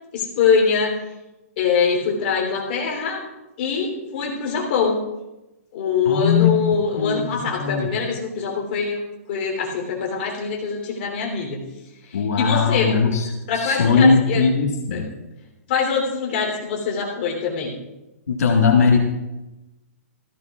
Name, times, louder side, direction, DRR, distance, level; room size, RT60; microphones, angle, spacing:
voice 1, 0.1-1.0 1.6-3.2 3.6-5.0 5.7-9.0 9.3-11.6 12.0-13.1 13.5-14.5 14.9-15.2 15.7-17.7, left 5 dB, 40° left, -1 dB, 3.3 m, -23 dB
voice 2, 6.1-6.5 7.0-7.2 7.6-7.9 12.1-13.1 13.6-15.1 18.3-19.0, left 5 dB, 85° left, 1 dB, 1.7 m, -18 dB
17.5 x 15.0 x 2.4 m, 1.0 s
hypercardioid pair, 165°, 8 cm